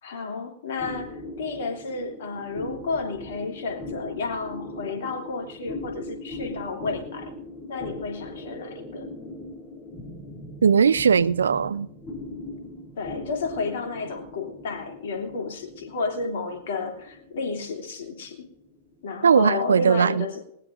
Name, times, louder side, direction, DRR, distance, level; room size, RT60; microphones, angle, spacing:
voice 1, 0.0-7.3 7.7-9.1 13.0-18.5 19.0-20.4, left 4 dB, 55° left, 3.0 m, -31 dB
sound 1, 0.8-19.5, left 2 dB, 25° left, 4.2 m, -40 dB
voice 2, 10.6-11.9 19.2-20.2, right 6 dB, 70° right, 0.4 m, -19 dB
19.5 x 19.0 x 2.6 m
figure-of-eight pair, 100°, 0 cm